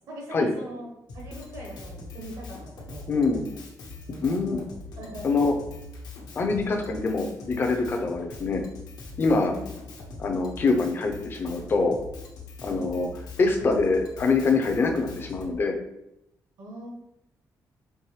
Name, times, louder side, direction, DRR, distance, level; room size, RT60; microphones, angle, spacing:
voice 1, 0.1-0.9 1.1-2.6 2.9-3.3 4.0-4.3 5.0-5.4 9.5-9.7 12.7-12.9 16.6-16.9, right 1 dB, 70° right, -2 dB, 1.1 m, -41 dB
Drum kit, 1.1-15.5, left 2 dB, 80° left, 0.9 m, -42 dB
voice 2, 3.1-3.5 4.2-4.6 5.2-5.5 6.4-8.6 9.2-9.5 10.2-11.9 12.6-13.1 13.4-15.8, left 3 dB, 35° left, 3 dB, 0.5 m, -24 dB
4.6 x 3.1 x 3.1 m, 0.83 s
wide cardioid pair, 170°, 7 cm